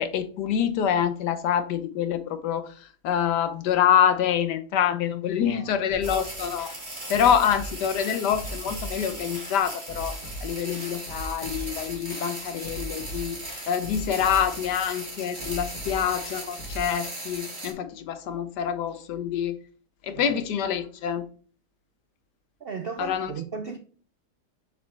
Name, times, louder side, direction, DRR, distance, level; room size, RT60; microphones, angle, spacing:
voice 1, 0.0-2.7 3.0-6.7 7.1-10.1 10.4-13.4 13.7-19.6 20.0-21.2 23.0-23.3, left 8 dB, 85° left, 1.4 m, -26 dB
voice 2, 5.4-5.8 20.1-20.4 22.6-23.8, right 5 dB, 70° right, 0.5 m, -36 dB
sound 1, 5.9-16.9, equal, 65° left, 2.0 m, -40 dB
sound 2, 6.0-17.7, right 1 dB, 30° right, 2.5 m, -38 dB
7.1 x 6.0 x 3.3 m
omnidirectional pair, 1.7 m